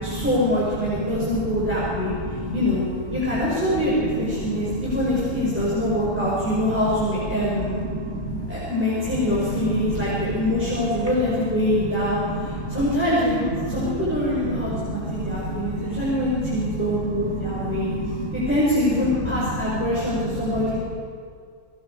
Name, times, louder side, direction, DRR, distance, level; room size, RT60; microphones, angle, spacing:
voice 1, 0.0-2.1 2.5-2.8 3.1-7.8 8.5-17.9 18.3-20.8, left 1 dB, 10° right, -8 dB, 5.2 m, -24 dB
voice 2, 2.3-2.6 4.3-4.8 6.1-6.2 7.8-8.5 9.1-9.3 9.6-9.9 10.5-10.6 12.3-12.8 13.6-13.9 14.5-16.0 16.4-16.7 17.3-18.4 19.6-19.7 20.5-20.6, right 1 dB, 35° right, -4 dB, 3.4 m, -30 dB
28.5 x 19.5 x 4.7 m, 2.3 s
omnidirectional pair, 1.6 m